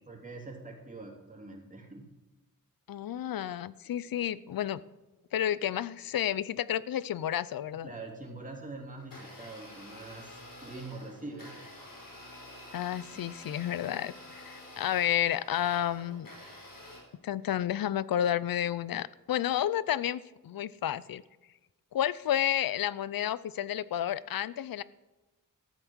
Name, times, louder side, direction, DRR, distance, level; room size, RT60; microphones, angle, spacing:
voice 1, 0.1-2.0 3.8-4.0 7.8-11.5 13.1-13.3, right 2 dB, 25° right, 0 dB, 2.9 m, -44 dB
voice 2, 2.9-4.8 5.3-7.9 12.7-16.3 17.2-21.2 21.9-24.8, left 11 dB, 90° left, 19 dB, 0.5 m, -31 dB
Domestic sounds home sounds, 9.0-17.0, left 1 dB, 75° left, 5.1 m, -49 dB
13.5 x 8.1 x 6.2 m, 1.1 s
wide cardioid pair, 105°, 34 cm